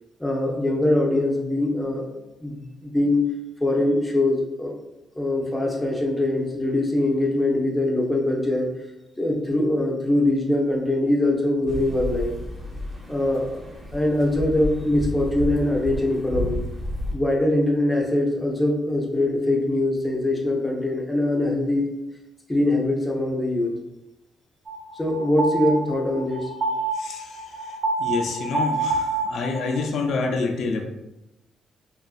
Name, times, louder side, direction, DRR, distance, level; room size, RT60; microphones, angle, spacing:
voice 1, 0.2-3.3 3.6-4.8 5.2-8.7 9.2-12.3 13.1-13.6 13.9-16.6 17.1-21.9 22.5-23.7 24.9-26.5, left 1 dB, 10° left, -1 dB, 0.6 m, -23 dB
sound 1, 11.7-17.1, left 1 dB, 20° right, 0.8 m, -32 dB
sound 2, 24.7-29.8, right 3 dB, 60° right, 0.6 m, -27 dB
voice 2, 28.0-30.8, left 4 dB, 75° left, 3 dB, 0.3 m, -27 dB
2.9 x 2.4 x 2.3 m, 0.92 s
cardioid pair, 110°, 0 cm